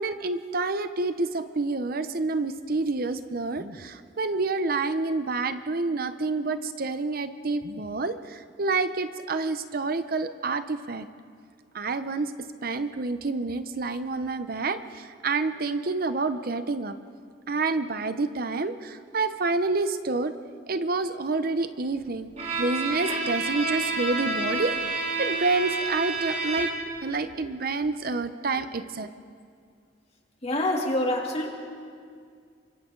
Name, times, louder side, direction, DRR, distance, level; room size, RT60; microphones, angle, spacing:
voice 1, 0.0-11.1 11.7-12.3 12.6-16.9 17.5-20.3 20.7-22.3 22.6-29.1, right 3 dB, 55° right, 10 dB, 0.8 m, -28 dB
Bowed string instrument, 22.4-27.0, right 3 dB, 40° right, 3.6 m, -29 dB
voice 2, 30.4-31.5, left 1 dB, 35° left, 0 dB, 2.9 m, -26 dB
29.0 x 24.5 x 3.9 m, 2.2 s
head